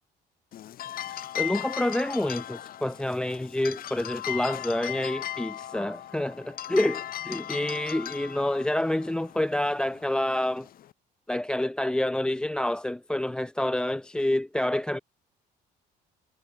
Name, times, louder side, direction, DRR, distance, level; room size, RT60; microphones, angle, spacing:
sound 1, 0.5-10.9, left 11 dB, 60° left, 2.0 m, -37 dB
voice 1, 1.1-10.7 11.3-15.0, left 1 dB, 5° left, 0.3 m, -28 dB
cardioid pair, 110°, 17 cm